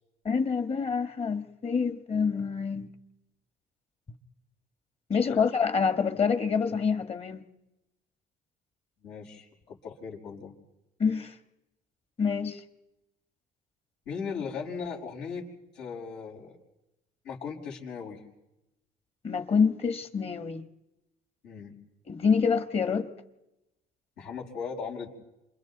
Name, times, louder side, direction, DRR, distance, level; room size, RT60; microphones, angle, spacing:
voice 1, 0.2-2.9 5.1-7.4 11.0-11.3 12.2-12.6 19.2-20.6 22.1-23.1, left 5 dB, 35° left, 1.7 m, -26 dB
voice 2, 5.1-5.4 9.0-10.5 14.1-15.5 15.7-16.6 17.2-18.2 21.4-21.7 24.2-25.1, left 5 dB, 80° left, 5.9 m, -38 dB
29.5 x 27.5 x 4.1 m
cardioid pair, 110°, 17 cm